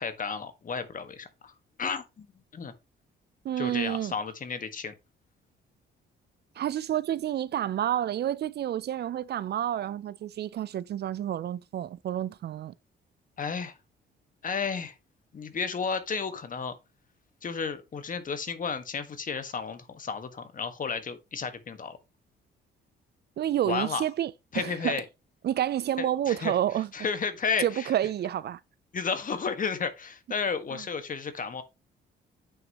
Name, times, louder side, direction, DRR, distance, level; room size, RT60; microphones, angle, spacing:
voice 1, 0.0-1.5 1.8-2.3 2.5-2.7 3.6-4.9 13.4-13.7 14.4-14.9 15.3-16.7 17.4-22.0 23.6-24.0 24.5-25.0 26.0-26.5 26.9-27.9 28.9-31.6, left 5 dB, 40° left, 1.6 m, -32 dB
voice 2, 3.4-4.1 6.6-12.7 23.4-25.0 25.4-26.9 27.6-28.6 30.7-30.8, right 11 dB, 55° right, 0.5 m, -29 dB
8.7 x 6.4 x 3.0 m
cardioid pair, 90°, 20 cm